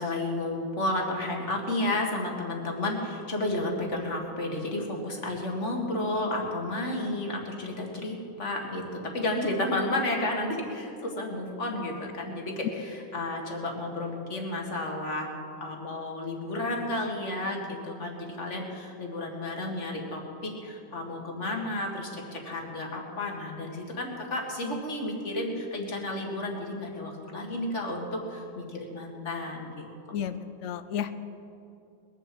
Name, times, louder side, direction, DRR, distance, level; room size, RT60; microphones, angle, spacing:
voice 1, 0.0-15.3 15.6-29.9, left 1 dB, 40° left, 1 dB, 2.3 m, -32 dB
voice 2, 30.1-31.1, left 9 dB, 80° left, 11 dB, 0.6 m, -32 dB
21.0 x 7.2 x 7.8 m, 2.6 s
omnidirectional pair, 1.9 m